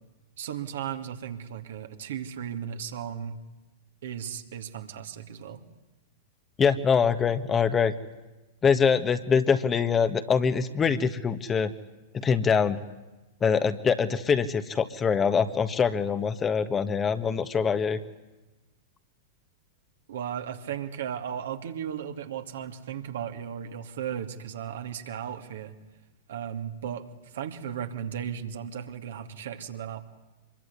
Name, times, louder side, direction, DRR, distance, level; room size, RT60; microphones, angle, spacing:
voice 1, 0.4-3.4 4.0-5.6 10.9-11.1 20.1-25.7 26.3-27.0 27.3-30.0, right 9 dB, 65° right, 6 dB, 2.7 m, -35 dB
voice 2, 6.6-7.9 8.6-11.7 12.1-12.8 13.4-18.0, left 6 dB, 20° left, 10 dB, 1.6 m, -24 dB
25.5 x 22.5 x 9.8 m, 1.1 s
figure-of-eight pair, 100°, 0 cm